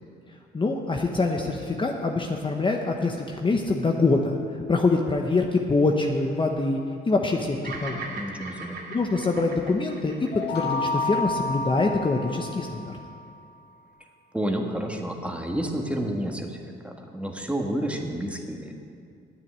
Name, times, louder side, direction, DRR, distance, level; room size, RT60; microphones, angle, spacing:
voice 1, 0.5-4.4 4.7-6.8 7.1-8.2 8.9-13.0, left 3 dB, 25° left, 1 dB, 1.0 m, -24 dB
Bird vocalization bird call bird song, 7.6-11.9, right 3 dB, 60° right, 2.6 m, -40 dB
voice 2, 8.1-8.8 14.3-18.7, right 1 dB, 5° right, 2 dB, 1.6 m, -30 dB
sound 1, 10.3-13.1, left 3 dB, 55° left, 2.7 m, -30 dB
9.6 x 9.2 x 8.9 m, 2.4 s
cardioid pair, 90°, 20 cm